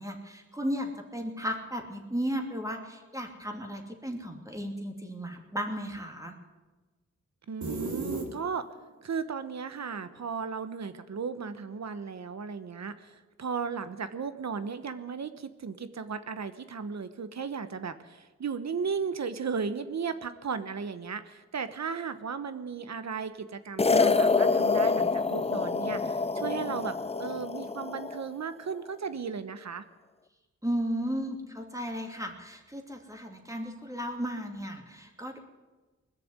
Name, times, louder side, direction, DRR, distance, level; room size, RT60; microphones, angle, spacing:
voice 1, 0.0-6.3 30.6-35.4, equal, 10° right, 3 dB, 2.7 m, -35 dB
voice 2, 7.5-8.6 9.0-29.8, right 6 dB, 65° right, 11 dB, 1.1 m, -35 dB
sound 1, 7.6-8.8, right 3 dB, 80° right, 2.7 m, -35 dB
sound 2, 23.8-28.2, left 4 dB, 20° left, 0.5 m, -26 dB
20.5 x 6.9 x 9.6 m, 1.2 s
cardioid pair, 60°, 29 cm